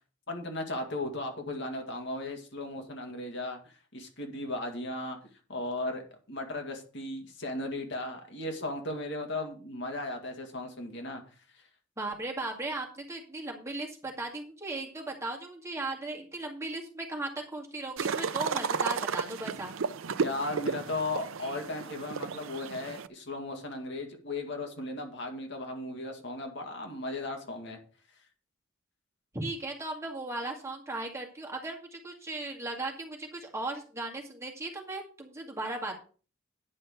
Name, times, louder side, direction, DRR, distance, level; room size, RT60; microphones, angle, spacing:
voice 1, 0.3-5.2 5.5-11.2 11.5-11.7 20.2-27.8, left 2 dB, 60° left, 2.1 m, -36 dB
voice 2, 12.0-19.7 29.3-36.0, right 2 dB, 15° right, 2.1 m, -37 dB
sound 1, 18.0-23.1, right 5 dB, 90° right, 0.5 m, -33 dB
9.9 x 5.5 x 6.5 m
head